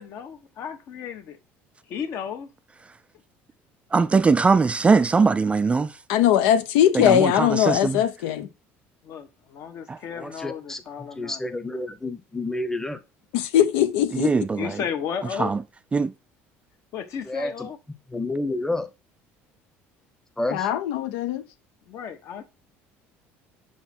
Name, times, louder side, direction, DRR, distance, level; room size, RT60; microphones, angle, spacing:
voice 1, 0.0-1.4 1.9-2.5 9.0-11.5 14.6-15.5 16.9-17.8 21.9-22.4, left 7 dB, 60° left, 1.3 m, -34 dB
voice 2, 3.9-5.9 6.9-8.0 9.9-10.0 14.1-14.7 15.4-15.6 15.9-16.1, right 4 dB, 20° right, 0.3 m, -21 dB
voice 3, 6.1-8.5 13.3-14.3 20.5-21.4, left 11 dB, 85° left, 0.7 m, -20 dB
voice 4, 10.1-10.8 11.1-13.0 17.3-17.7 18.1-18.9 20.4-20.7, left 2 dB, 10° left, 0.9 m, -29 dB
6.1 x 4.0 x 4.4 m
supercardioid pair, 95°, 6 cm